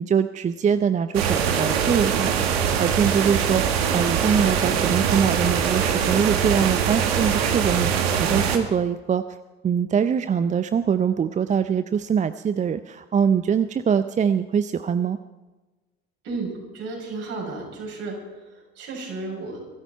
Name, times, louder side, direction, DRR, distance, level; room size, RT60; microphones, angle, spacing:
voice 1, 0.0-9.2 9.6-15.2, right 7 dB, 25° right, 12 dB, 0.6 m, -23 dB
sound 1, 1.1-8.6, right 7 dB, 70° right, 1.7 m, -23 dB
voice 2, 16.2-19.6, right 3 dB, 55° right, -2 dB, 7.4 m, -33 dB
22.5 x 13.5 x 4.6 m, 1.2 s
figure-of-eight pair, 60°, 31 cm